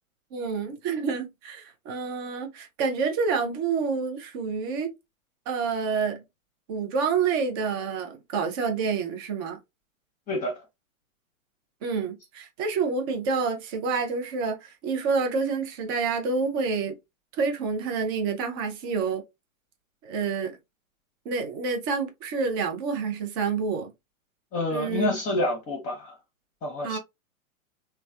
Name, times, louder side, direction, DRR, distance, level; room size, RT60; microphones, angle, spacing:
voice 1, 0.3-4.9 5.5-6.2 6.7-9.6 11.8-17.0 17.3-19.2 20.0-20.6 21.3-23.9 24.7-25.1 26.8-27.0, right 5 dB, 20° right, 0.3 m, -28 dB
voice 2, 10.3-10.6 24.5-26.2 26.6-27.0, left 2 dB, 20° left, 0.7 m, -28 dB
3.0 x 2.1 x 2.3 m
hypercardioid pair, 115°, 41 cm